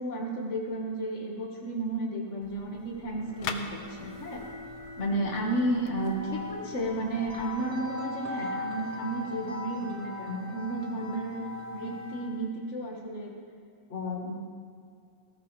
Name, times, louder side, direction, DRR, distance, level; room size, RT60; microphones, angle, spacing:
voice 1, 0.0-4.4 5.0-11.4 11.7-13.3 13.9-14.5, right 1 dB, 25° left, -1 dB, 1.7 m, -32 dB
sound 1, 2.4-7.5, left 7 dB, 80° left, 1.4 m, -44 dB
sound 2, 3.0-12.5, left 1 dB, 75° right, 0.3 m, -40 dB
18.5 x 15.5 x 3.5 m, 2.3 s
omnidirectional pair, 3.7 m